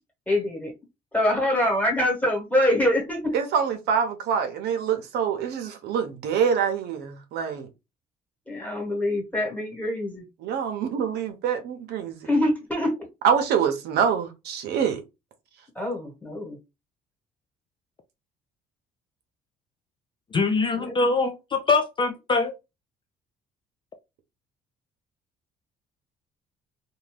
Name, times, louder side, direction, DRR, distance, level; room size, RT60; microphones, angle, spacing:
voice 1, 0.3-0.7 1.1-3.4 8.5-10.2 12.2-12.9 15.7-16.6 20.7-20.9, left 1 dB, 10° left, 1.3 m, -24 dB
voice 2, 3.3-7.7 10.4-12.3 13.2-15.0, right 7 dB, 75° right, 0.7 m, -25 dB
voice 3, 20.3-22.5, left 3 dB, 30° left, 0.4 m, -23 dB
2.7 x 2.2 x 3.2 m
cardioid pair, 110°, 17 cm